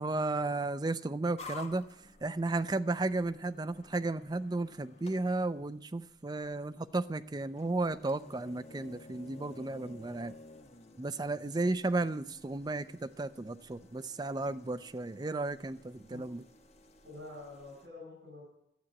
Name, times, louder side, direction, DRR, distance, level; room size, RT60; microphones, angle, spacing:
voice 1, 0.0-1.8 2.2-10.4 11.0-16.4, right 2 dB, 20° right, 12 dB, 0.5 m, -34 dB
sound 1, 1.4-17.9, left 2 dB, 35° left, 1.1 m, -54 dB
voice 2, 17.0-18.4, left 2 dB, 80° right, -5 dB, 6.2 m, -47 dB
12.5 x 7.2 x 8.8 m, 0.77 s
head